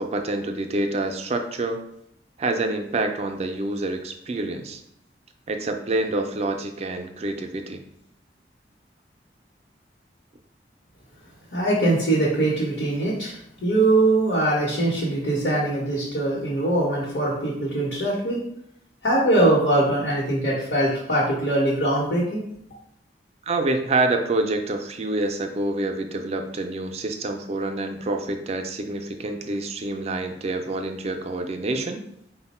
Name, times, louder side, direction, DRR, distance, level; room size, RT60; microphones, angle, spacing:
voice 1, 0.0-1.8 2.4-4.8 5.5-7.8 23.5-32.0, right 2 dB, 35° right, 5 dB, 0.4 m, -27 dB
voice 2, 11.5-18.4 19.0-22.4, right 1 dB, 65° left, -6 dB, 1.0 m, -22 dB
4.1 x 2.1 x 4.1 m, 0.75 s
head